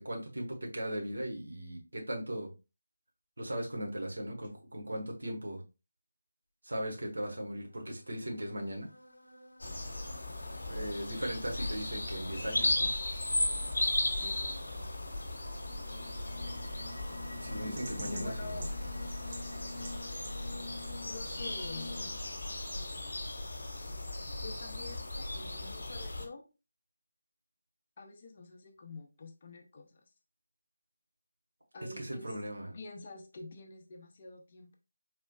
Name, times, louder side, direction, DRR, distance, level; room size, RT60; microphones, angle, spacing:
voice 1, 0.0-2.5 3.4-5.6 6.6-8.9 10.7-12.9 17.3-18.6 32.0-32.7, right 1 dB, 65° right, 0 dB, 1.3 m, -38 dB
sound 1, 7.6-22.2, left 2 dB, 75° left, 0.7 m, -50 dB
sound 2, 9.6-26.2, left 1 dB, 60° left, 1.1 m, -36 dB
voice 2, 14.2-14.6 17.6-18.7 21.1-22.1 24.4-26.4 28.0-30.0 31.7-32.4 32.7-34.8, left 3 dB, 35° left, 3 dB, 0.6 m, -47 dB
sound 3, 15.9-22.1, right 2 dB, 30° right, 0.8 m, -51 dB
4.0 x 3.1 x 2.3 m, 0.29 s
figure-of-eight pair, 155°, 0 cm